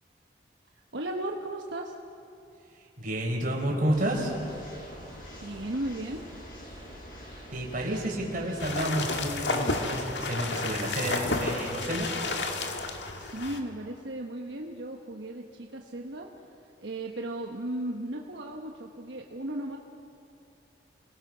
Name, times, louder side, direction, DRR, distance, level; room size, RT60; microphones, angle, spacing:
voice 1, 0.9-2.0 5.4-6.2 13.1-16.5 16.8-19.8, right 1 dB, 80° right, 1 dB, 1.2 m, -36 dB
voice 2, 3.0-4.3 7.5-12.1, right 1 dB, 50° right, 0 dB, 4.4 m, -30 dB
sound 1, 3.9-9.4, equal, 55° left, 7.0 m, -46 dB
sound 2, 8.6-13.6, left 3 dB, 75° left, 1.9 m, -31 dB
28.0 x 19.5 x 6.2 m, 2.7 s
head